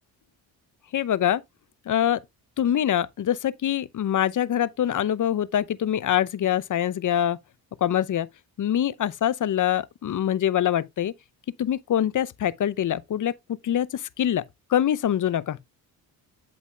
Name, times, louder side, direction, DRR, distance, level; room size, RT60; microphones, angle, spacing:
voice 1, 0.9-1.4 1.9-2.2 2.6-7.4 7.8-8.3 8.6-11.1 11.6-13.3 13.6-14.4 14.7-15.6, left 10 dB, 40° left, 0.7 m, -24 dB
9.6 x 8.0 x 2.3 m
hypercardioid pair, 50°, 49 cm